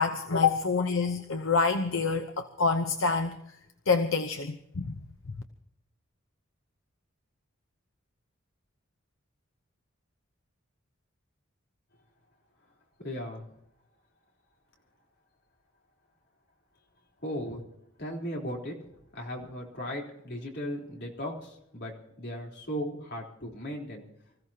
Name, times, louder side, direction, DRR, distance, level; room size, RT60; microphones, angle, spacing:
voice 1, 0.0-3.4 3.9-5.0, left 4 dB, 75° left, 7 dB, 0.8 m, -27 dB
voice 2, 13.0-13.5 17.2-17.6 18.0-18.7 19.1-24.0, equal, 55° left, -1 dB, 3.7 m, -37 dB
25.5 x 15.0 x 2.9 m, 0.78 s
head